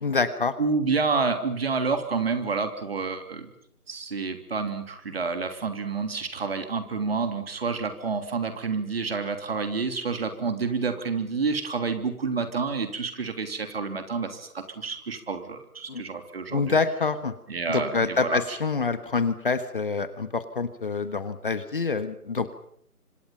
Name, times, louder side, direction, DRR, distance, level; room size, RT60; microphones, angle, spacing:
voice 1, 0.0-0.5 15.9-16.0 16.5-17.3 17.7-22.5, left 4 dB, 35° left, 12 dB, 1.4 m, -26 dB
voice 2, 0.6-3.5 3.9-16.8 17.5-18.6, right 4 dB, 40° right, 7 dB, 3.2 m, -29 dB
29.5 x 25.5 x 5.7 m, 0.67 s
figure-of-eight pair, 155°, 45 cm